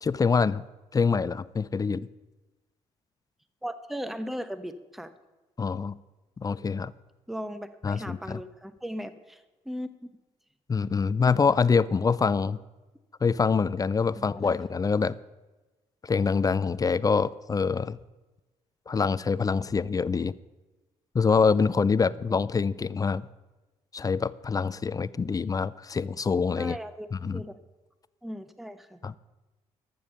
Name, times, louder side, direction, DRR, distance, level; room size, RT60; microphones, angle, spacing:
voice 1, 0.0-0.6 0.9-2.1 5.6-5.9 6.4-6.9 7.8-8.4 10.7-12.6 13.2-15.2 16.0-18.0 18.9-20.3 21.1-23.3 23.9-26.8 27.1-27.4 29.0-29.1, left 5 dB, 25° left, 0.4 m, -25 dB
voice 2, 3.6-5.1 7.3-9.9 14.2-14.6 26.6-27.6 28.2-29.0, equal, ahead, 0.8 m, -37 dB
13.0 x 7.1 x 6.5 m
supercardioid pair, 60°, 13 cm